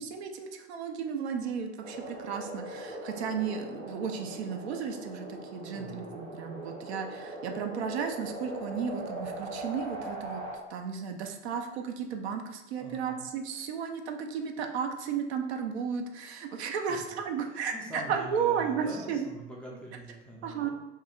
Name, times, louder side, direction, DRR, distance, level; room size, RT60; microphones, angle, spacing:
voice 1, 0.0-10.4 10.7-19.3 20.4-20.7, right 7 dB, 60° right, 4 dB, 0.5 m, -34 dB
sound 1, 1.8-10.6, right 1 dB, 85° right, 1.2 m, -40 dB
voice 2, 5.7-6.2 12.8-13.2 16.9-17.0 17.5-20.7, equal, 5° left, -3 dB, 0.4 m, -44 dB
2.7 x 2.5 x 4.2 m, 0.98 s
figure-of-eight pair, 75°, 37 cm